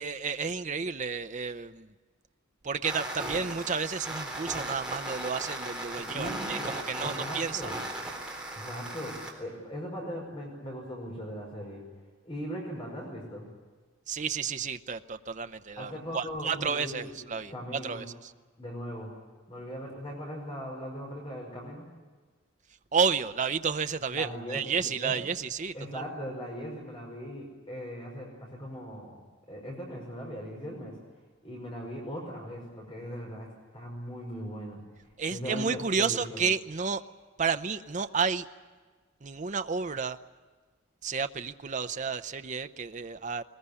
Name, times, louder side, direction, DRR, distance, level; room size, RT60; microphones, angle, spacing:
voice 1, 0.0-1.9 2.6-7.7 14.1-18.1 22.9-26.0 35.2-37.0 37.4-38.5 39.2-40.2 41.0-43.4, right 5 dB, 40° right, 9 dB, 0.7 m, -31 dB
sound 1, 2.8-9.3, right 1 dB, 5° right, 3.8 m, -37 dB
voice 2, 6.0-6.7 7.0-7.8 8.5-11.8 12.2-13.5 15.8-18.0 18.6-19.1 19.5-21.8 24.1-25.2 25.7-29.2 29.5-30.9 31.4-34.8 35.3-36.4, equal, 30° left, 0 dB, 5.4 m, -39 dB
21.0 x 20.5 x 9.8 m, 1.4 s
head